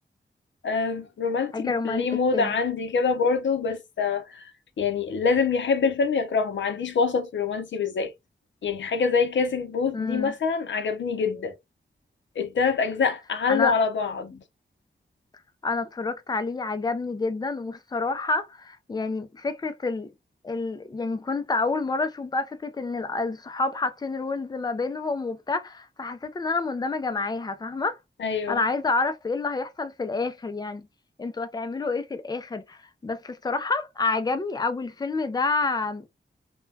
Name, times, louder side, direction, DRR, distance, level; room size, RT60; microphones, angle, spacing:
voice 1, 0.6-4.5 4.8-8.1 8.6-11.5 12.4-14.4 28.2-28.6, left 5 dB, 80° left, 0.6 m, -25 dB
voice 2, 1.5-2.1 2.3-2.5 9.9-10.3 13.5-13.7 15.6-20.1 20.4-28.0 28.5-30.9 31.2-36.1, left 3 dB, 20° left, 0.4 m, -28 dB
2.2 x 2.2 x 3.2 m
wide cardioid pair, 155°, 19 cm